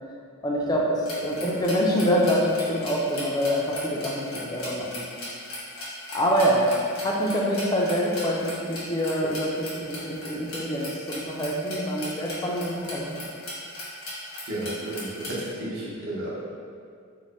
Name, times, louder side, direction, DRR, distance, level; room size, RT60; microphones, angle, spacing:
voice 1, 0.4-5.1 6.1-6.7 7.0-13.2, equal, 20° left, -2 dB, 0.3 m, -25 dB
sound 1, 1.0-15.5, left 1 dB, 85° left, 1.1 m, -38 dB
voice 2, 14.4-16.3, right 1 dB, 60° right, -6 dB, 0.8 m, -32 dB
3.1 x 2.1 x 4.1 m, 2.2 s
head